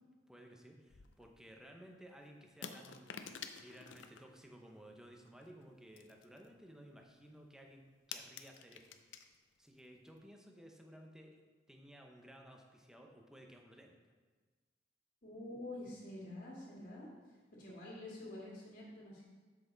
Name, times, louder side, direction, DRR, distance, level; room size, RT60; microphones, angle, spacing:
voice 1, 0.3-7.8 8.1-8.9 9.6-11.4 11.7-14.0, equal, 5° right, 2 dB, 0.8 m, -57 dB
sound 1, 0.9-1.4 2.6-4.2 5.3-5.6 6.0-6.7 7.0-7.1 7.4-7.5 7.6-9.4 9.6-9.8 10.1-10.2, left 7 dB, 80° left, 0.5 m, -49 dB
voice 2, 15.2-17.1 17.6-19.2, left 1 dB, 50° left, -5 dB, 2.2 m, -47 dB
7.6 x 6.0 x 3.9 m, 1.4 s
head